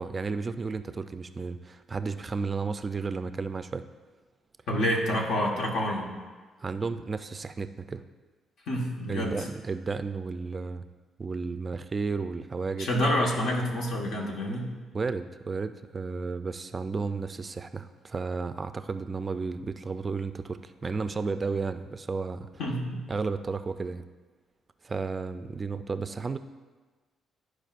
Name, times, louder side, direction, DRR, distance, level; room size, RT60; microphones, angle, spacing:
voice 1, 0.0-3.8 6.6-8.0 9.1-10.9 11.2-12.9 14.9-22.5 23.1-24.0 24.8-26.4, right 4 dB, 30° right, 10 dB, 0.3 m, -33 dB
voice 2, 4.7-6.1 8.7-9.4 12.8-14.7 22.6-23.0, equal, 75° left, -1 dB, 1.4 m, -28 dB
12.5 x 4.8 x 2.5 m, 1.3 s
cardioid pair, 90°, 0 cm